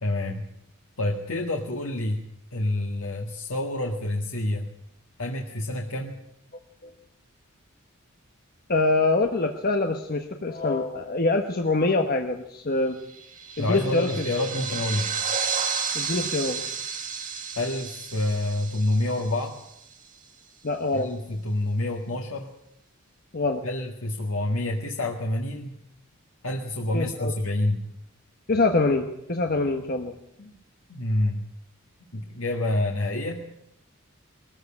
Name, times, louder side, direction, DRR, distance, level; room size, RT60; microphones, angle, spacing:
voice 1, 0.0-0.4 1.0-2.2 2.5-4.7 5.2-6.2 13.6-15.1 17.6-19.6 20.9-22.5 23.6-25.8 26.4-27.8 30.4-30.5 30.9-31.4 32.1-33.5, left 1 dB, 80° left, 1 dB, 1.9 m, -28 dB
voice 2, 8.7-13.0 13.6-14.2 15.9-16.6 20.6-21.1 23.3-23.6 26.9-27.3 28.5-30.2, left 3 dB, 45° left, 4 dB, 1.3 m, -24 dB
sound 1, 13.1-19.9, right 6 dB, 40° right, 2.0 m, -32 dB
21.0 x 14.5 x 8.8 m, 0.79 s
head